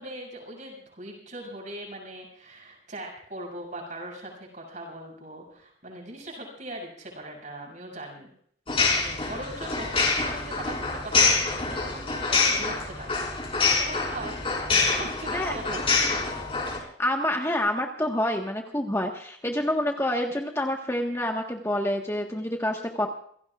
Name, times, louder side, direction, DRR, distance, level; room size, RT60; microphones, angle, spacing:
voice 1, 0.0-8.3 8.9-14.4 14.9-16.4, right 1 dB, 40° right, 0 dB, 7.7 m, -40 dB
sound 1, 8.7-16.8, left 4 dB, 30° left, 5.1 m, -26 dB
voice 2, 17.0-23.1, left 1 dB, 15° left, 1 dB, 1.5 m, -27 dB
28.0 x 17.0 x 2.5 m, 0.62 s
head